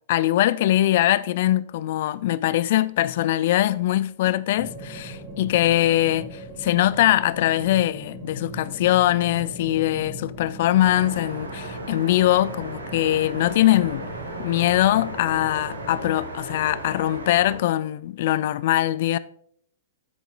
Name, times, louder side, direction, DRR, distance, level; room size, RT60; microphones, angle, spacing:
voice 1, 0.1-14.0 14.4-19.2, left 14 dB, 50° left, 0.3 m, -22 dB
sound 1, 4.5-16.2, right 2 dB, 10° right, 4.0 m, -40 dB
sound 2, 10.8-17.5, right 1 dB, 80° right, 2.0 m, -36 dB
13.0 x 8.4 x 2.2 m
figure-of-eight pair, 105°, 0 cm